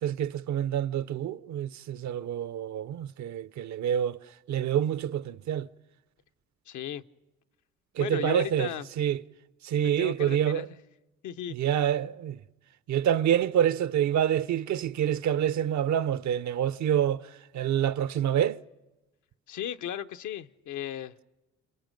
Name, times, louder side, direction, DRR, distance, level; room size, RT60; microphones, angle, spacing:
voice 1, 0.0-4.2 4.5-5.7 8.0-8.7 9.0-9.2 9.6-10.7 11.5-12.4 12.9-17.3 17.5-18.6, right 10 dB, 65° right, 0.7 m, -27 dB
voice 2, 6.7-7.0 8.0-8.9 9.8-10.7 11.2-11.6 19.5-21.2, left 10 dB, 75° left, 0.8 m, -35 dB
29.0 x 27.0 x 5.2 m
cardioid pair, 90°, 30 cm